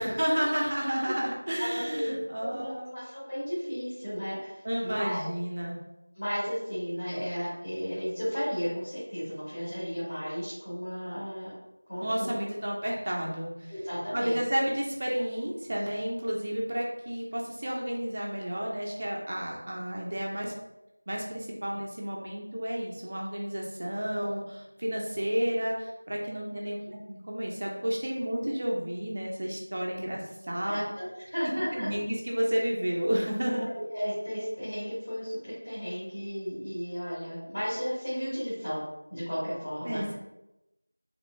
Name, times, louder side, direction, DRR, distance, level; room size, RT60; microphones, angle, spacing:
voice 1, 0.0-3.0 4.6-5.8 12.0-13.7 14.1-20.5 21.1-26.8 27.1-30.8 31.4-33.7 39.8-40.1, equal, 25° right, -2 dB, 0.4 m, -31 dB
voice 2, 1.6-5.2 6.1-11.5 11.9-12.3 13.7-14.4 15.1-15.2 30.6-31.9 33.5-38.8 39.1-40.0, equal, 15° left, -13 dB, 1.0 m, -34 dB
3.0 x 2.9 x 2.4 m, 0.92 s
figure-of-eight pair, 175°, 0 cm